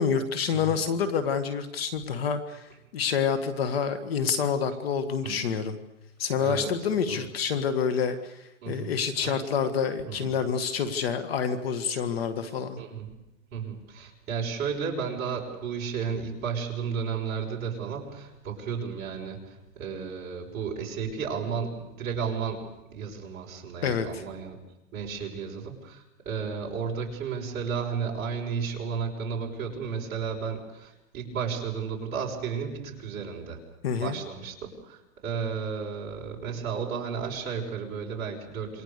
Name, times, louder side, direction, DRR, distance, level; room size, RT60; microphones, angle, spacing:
voice 1, 0.0-5.8 6.2-12.8 23.8-24.2 33.8-34.2, left 6 dB, 45° left, 11 dB, 1.8 m, -28 dB
voice 2, 5.2-5.6 6.4-6.7 7.1-7.3 8.6-9.4 10.1-10.3 12.8-13.2 13.5-24.6 24.9-33.6 34.0-38.8, right 6 dB, 25° right, -3 dB, 5.4 m, -33 dB
28.0 x 23.5 x 6.8 m, 0.94 s
hypercardioid pair, 165°, 42 cm